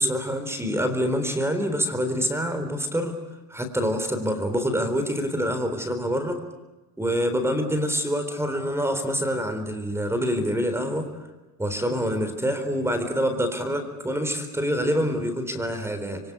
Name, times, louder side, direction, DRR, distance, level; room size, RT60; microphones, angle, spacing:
voice 1, 0.0-3.2 3.5-6.4 7.0-11.1 11.6-16.2, equal, 5° right, 8 dB, 4.0 m, -26 dB
27.0 x 23.5 x 8.2 m, 1.1 s
cardioid pair, 140°, 42 cm